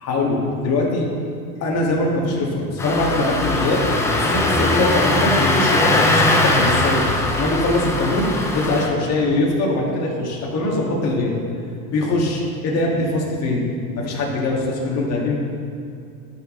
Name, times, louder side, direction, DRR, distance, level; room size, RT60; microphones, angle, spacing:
voice 1, 0.0-1.1 1.6-3.8 4.1-7.1 7.4-11.4 11.9-13.7 13.9-15.4, left 2 dB, 35° left, -3 dB, 2.1 m, -22 dB
Engine starting, 2.8-8.9, left 2 dB, 5° left, 0.3 m, -20 dB
12.5 x 6.3 x 3.3 m, 2.4 s
supercardioid pair, 125°, 45 cm